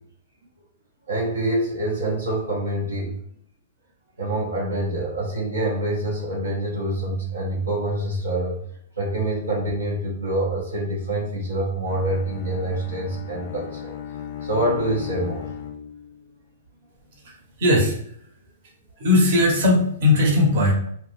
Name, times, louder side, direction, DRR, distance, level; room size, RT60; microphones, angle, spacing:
voice 1, 1.1-3.1 4.2-8.6 9.0-14.0 14.4-15.5, right 1 dB, 90° right, -3 dB, 0.7 m, -26 dB
Bowed string instrument, 11.8-16.3, left 8 dB, 55° left, 0.4 m, -36 dB
voice 2, 17.2-18.0 19.0-20.7, left 2 dB, 60° right, 0 dB, 0.9 m, -18 dB
2.5 x 2.2 x 3.1 m, 0.65 s
hypercardioid pair, 115°, 0 cm